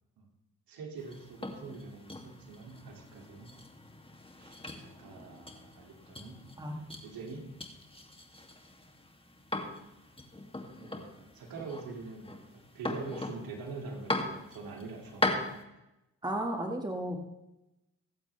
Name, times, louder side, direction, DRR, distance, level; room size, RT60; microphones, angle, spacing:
voice 1, 0.7-3.5 4.3-6.4 6.8-7.5 10.7-15.4, right 4 dB, 80° right, 2 dB, 2.5 m, -45 dB
sound 1, 1.0-15.6, left 2 dB, 15° left, 2.4 m, -40 dB
voice 2, 16.2-17.2, right 1 dB, 10° right, 2 dB, 1.9 m, -34 dB
23.5 x 8.2 x 3.4 m, 0.92 s
supercardioid pair, 55°, 34 cm